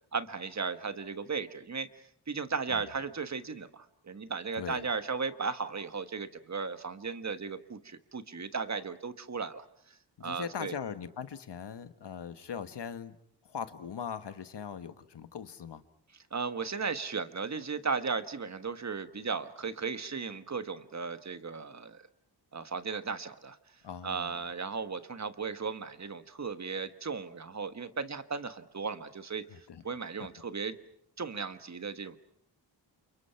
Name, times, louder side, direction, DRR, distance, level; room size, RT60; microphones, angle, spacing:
voice 1, 0.1-1.9 2.3-10.7 16.3-22.1 22.5-23.6 24.0-29.4 29.8-30.8 31.2-32.2, right 5 dB, 40° right, 11 dB, 1.5 m, -36 dB
voice 2, 10.2-13.2 13.4-15.8 23.8-24.4 29.7-29.8, left 7 dB, 75° left, 11 dB, 1.6 m, -40 dB
29.5 x 29.0 x 5.8 m, 0.68 s
wide cardioid pair, 125°, 42 cm